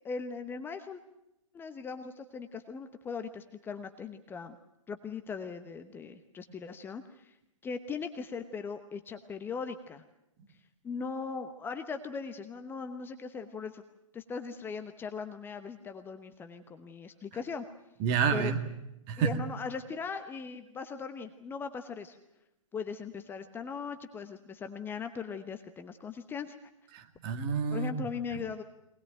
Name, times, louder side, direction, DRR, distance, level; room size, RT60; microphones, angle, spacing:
voice 1, 0.0-1.0 1.5-4.6 4.9-7.3 7.6-10.0 10.8-13.8 14.1-17.6 18.3-18.5 19.2-22.2 22.7-26.6 27.7-28.6, left 5 dB, 10° left, 8 dB, 1.0 m, -39 dB
voice 2, 18.0-18.6 19.1-19.4 26.9-28.0, right 6 dB, 30° right, 6 dB, 2.0 m, -29 dB
23.0 x 20.0 x 9.1 m, 0.87 s
figure-of-eight pair, 120°, 17 cm